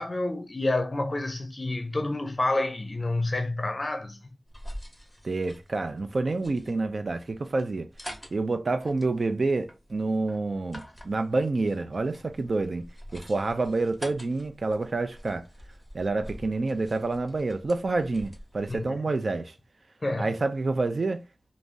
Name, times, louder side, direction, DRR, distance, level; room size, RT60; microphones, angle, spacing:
voice 1, 0.0-4.2 18.7-19.0 20.0-20.3, left 2 dB, 35° left, 0.6 m, -29 dB
sound 1, 4.5-18.8, equal, 5° left, 0.8 m, -46 dB
voice 2, 5.2-7.9 8.3-15.5 15.9-19.5 20.2-21.2, right 3 dB, 55° right, 0.5 m, -28 dB
2.6 x 2.0 x 3.4 m
wide cardioid pair, 85°, 0 cm